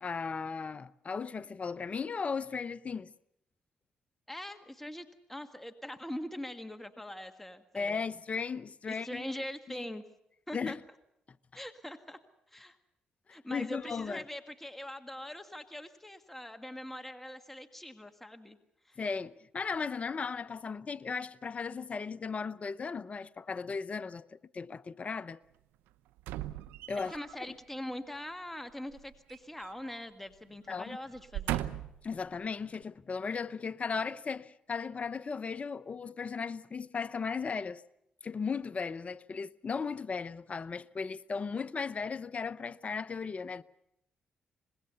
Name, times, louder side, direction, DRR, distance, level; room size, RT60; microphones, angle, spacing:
voice 1, 0.0-3.1 7.7-9.3 9.7-9.9 10.5-10.8 13.3-14.2 19.0-25.4 26.9-27.1 30.7-31.0 32.0-37.8 38.2-43.6, left 5 dB, 40° left, 0.8 m, -36 dB
voice 2, 4.3-8.0 8.9-10.0 10.5-10.8 11.5-12.2 12.5-12.8 13.3-18.6 18.8-19.0 27.1-31.6, left 1 dB, 10° left, 1.7 m, -42 dB
sound 1, 26.2-27.3 28.9-30.0 30.3-30.5 31.1-32.1 32.7-32.8, right 14 dB, 90° right, 0.8 m, -38 dB
25.0 x 21.0 x 6.9 m
supercardioid pair, 65°, 3 cm